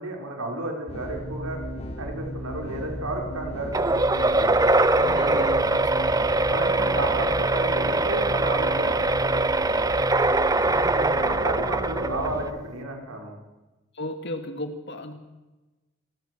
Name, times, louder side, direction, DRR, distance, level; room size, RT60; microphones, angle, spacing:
voice 1, 0.0-1.6 2.0-4.6 6.5-9.5 10.6-13.3, right 2 dB, 85° right, 1 dB, 5.9 m, -32 dB
sound 1, 0.9-12.4, equal, 30° left, 5.1 m, -35 dB
sound 2, 3.7-12.5, right 2 dB, 15° right, 0.7 m, -22 dB
voice 2, 4.9-6.2 13.9-15.1, left 1 dB, 50° left, 6 dB, 2.6 m, -34 dB
27.0 x 20.5 x 6.5 m, 1.1 s
head